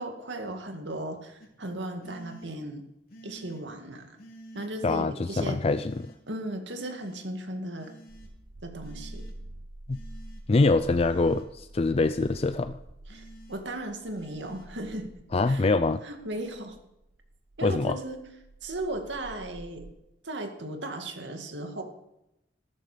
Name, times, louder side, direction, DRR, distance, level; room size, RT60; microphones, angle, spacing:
voice 1, 0.0-2.8 3.2-4.2 4.5-5.6 6.3-7.9 8.6-9.2 13.1-15.1 15.5-15.7 16.0-16.8 17.6-18.2 18.6-19.9 20.2-21.8, right 1 dB, 85° right, 5 dB, 2.2 m, -36 dB
sound 1, 1.4-1.5 2.0-2.5 3.1-3.6 4.2-4.7 5.6-6.2 6.7-7.3 7.8-8.3 8.8-9.3 9.9-10.4 10.9-11.5 12.0-12.5 13.1-13.6 14.1-14.7, right 1 dB, 55° left, 2.7 m, -50 dB
voice 2, 4.8-5.9 9.9-10.0 10.5-12.7 15.3-16.0 17.6-18.0, left 3 dB, 35° left, 11 dB, 0.4 m, -24 dB
sound 2, 8.1-19.9, right 1 dB, 55° right, 0.9 m, -47 dB
14.0 x 13.0 x 5.1 m, 0.86 s
head